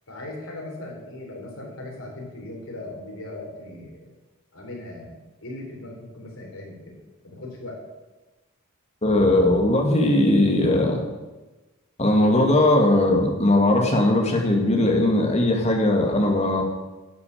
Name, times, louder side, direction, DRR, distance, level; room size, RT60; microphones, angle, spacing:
voice 1, 0.1-4.1 4.5-7.0 7.2-7.8, left 2 dB, 80° left, -1 dB, 4.1 m, -38 dB
voice 2, 9.0-11.0 12.0-16.6, left 1 dB, 30° left, 1 dB, 2.3 m, -19 dB
10.5 x 6.9 x 8.7 m, 1.1 s
head